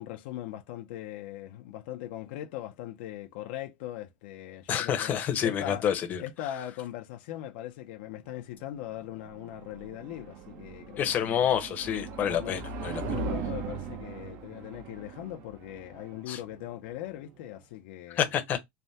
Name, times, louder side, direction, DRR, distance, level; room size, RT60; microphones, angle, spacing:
voice 1, 0.0-5.1 5.4-5.8 6.2-11.4 12.3-12.6 13.0-18.2, left 13 dB, 70° left, 0.5 m, -40 dB
voice 2, 4.7-6.2 11.0-13.0 16.3-16.4 18.2-18.6, left 9 dB, 30° left, 0.7 m, -28 dB
sound 1, 8.6-17.6, right 4 dB, 50° right, 0.6 m, -39 dB
3.2 x 2.1 x 2.7 m
supercardioid pair, 155°, 6 cm